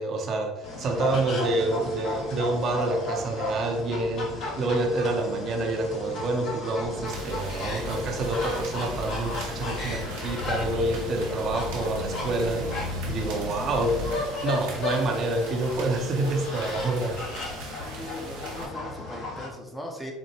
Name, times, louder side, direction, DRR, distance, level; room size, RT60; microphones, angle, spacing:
voice 1, 0.0-14.2 14.4-17.2, right 2 dB, 45° right, 3 dB, 0.7 m, -28 dB
sound 1, 0.6-19.5, left 2 dB, 50° left, 1.2 m, -35 dB
sound 2, 6.8-14.1, left 1 dB, 75° left, 1.2 m, -36 dB
sound 3, 7.0-18.7, right 3 dB, 80° right, 1.0 m, -41 dB
voice 2, 17.8-20.1, equal, 5° left, 1 dB, 0.8 m, -39 dB
4.3 x 2.2 x 2.9 m, 1.1 s
supercardioid pair, 85°, 0 cm